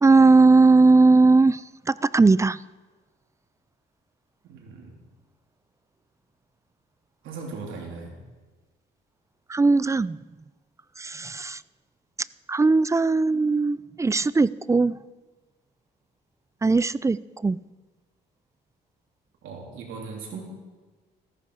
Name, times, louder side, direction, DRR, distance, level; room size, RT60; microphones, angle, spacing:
voice 1, 0.0-2.6 9.5-10.2 11.0-11.6 12.5-15.0 16.6-17.6, right 3 dB, 15° right, 19 dB, 0.3 m, -19 dB
voice 2, 4.4-5.0 7.2-8.2 19.4-20.4, right 4 dB, 80° right, 0 dB, 3.6 m, -38 dB
14.5 x 14.0 x 5.0 m, 1.3 s
cardioid pair, 90°, 20 cm